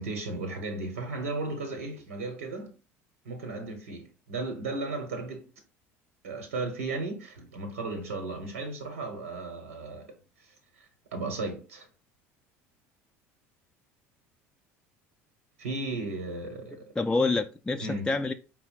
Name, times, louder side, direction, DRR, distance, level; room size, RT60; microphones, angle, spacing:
voice 1, 0.0-2.7 3.2-5.5 6.2-11.9 15.6-16.9 17.8-18.1, right 3 dB, 85° right, 0.9 m, -35 dB
voice 2, 16.7-18.3, left 3 dB, 10° left, 0.3 m, -28 dB
4.8 x 2.0 x 4.6 m
hypercardioid pair, 75°, 7 cm